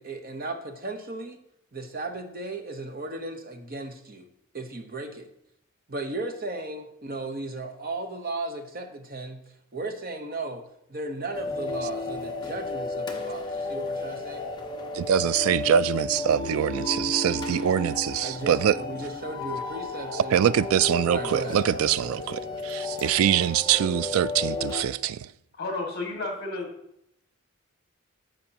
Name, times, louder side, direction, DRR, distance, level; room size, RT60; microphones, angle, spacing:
voice 1, 0.0-1.4 1.7-4.3 4.5-5.3 5.9-9.4 9.7-10.6 10.9-14.4 18.2-20.4 21.1-21.9, right 2 dB, 40° right, 1.0 m, -35 dB
sound 1, 11.3-24.8, left 3 dB, 20° left, 1.0 m, -33 dB
voice 2, 14.9-18.8 20.1-25.3, right 9 dB, 70° right, 0.3 m, -24 dB
voice 3, 25.6-26.7, left 2 dB, 50° left, 1.9 m, -31 dB
14.0 x 5.2 x 2.9 m
head